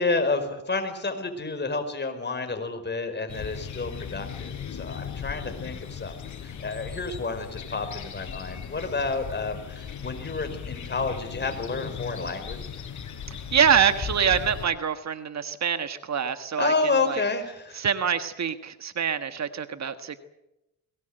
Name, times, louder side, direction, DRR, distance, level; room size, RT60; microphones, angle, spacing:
voice 1, 0.0-6.3 6.6-12.6 16.6-17.8, left 3 dB, 30° left, 7 dB, 5.1 m, -30 dB
sound 1, 3.3-14.7, left 7 dB, 55° left, 4.2 m, -37 dB
voice 2, 13.3-16.7 17.1-17.2 17.7-20.2, right 7 dB, 50° right, 10 dB, 1.6 m, -25 dB
22.0 x 19.0 x 7.9 m, 0.90 s
supercardioid pair, 70°, 35 cm